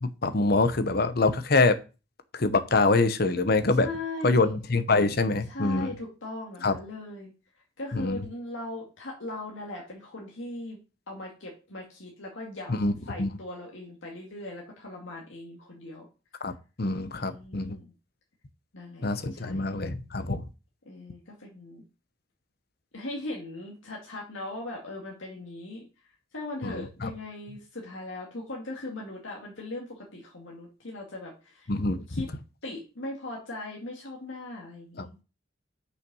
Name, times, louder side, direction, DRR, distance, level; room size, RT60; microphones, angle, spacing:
voice 1, 0.0-1.8 2.3-3.9 4.2-5.9 6.6-6.7 7.9-8.2 12.7-12.9 13.2-13.3 16.4-16.5 16.8-17.8 19.0-20.4 26.6-27.1 31.7-32.2 35.0-35.1, left 3 dB, 55° left, 11 dB, 0.9 m, -25 dB
voice 2, 3.8-4.5 5.5-7.3 7.8-10.8 11.1-16.1 17.2-17.9 18.7-19.8 20.8-21.8 22.9-25.9 26.3-31.7 32.1-32.3 32.6-35.2, left 2 dB, 85° left, -2 dB, 2.3 m, -39 dB
6.7 x 5.8 x 6.2 m, 0.32 s
head